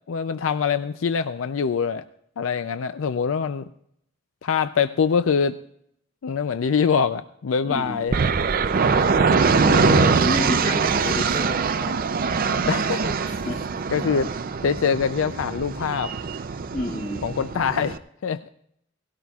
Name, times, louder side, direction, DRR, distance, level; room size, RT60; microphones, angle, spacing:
voice 1, 0.1-2.0 2.4-3.6 4.4-5.6 6.2-8.1 9.5-10.2 12.7-13.2 13.9-14.3 14.6-16.1 17.2-18.5, left 6 dB, 90° left, 11 dB, 0.4 m, -24 dB
voice 2, 7.6-8.0 8.6-12.0 13.2-14.1 16.7-17.2, left 1 dB, 40° left, -3 dB, 6.2 m, -31 dB
sound 1, 8.1-18.0, right 5 dB, 45° right, 0.5 m, -23 dB
18.0 x 16.5 x 2.4 m, 0.73 s
head